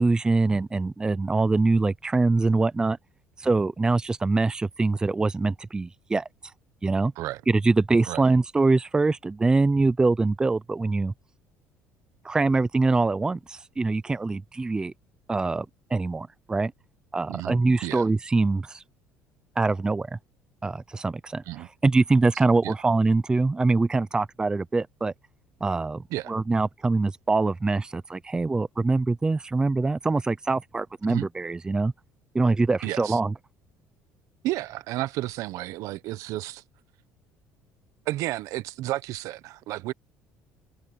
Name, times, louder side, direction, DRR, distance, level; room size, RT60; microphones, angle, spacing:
voice 1, 0.0-3.0 3.4-6.3 6.8-7.1 7.5-11.1 12.2-14.9 15.3-15.7 15.9-16.7 17.1-18.8 19.6-20.2 20.6-21.4 21.8-25.1 25.6-31.9 32.3-33.3, right 3 dB, 15° right, 0.5 m, -24 dB
voice 2, 17.3-18.1 21.5-21.7 22.6-22.7 26.1-26.3 31.0-31.3 32.8-33.2 34.4-36.6 38.1-39.9, right 16 dB, 70° right, 1.0 m, -32 dB
cardioid pair, 125°, 6 cm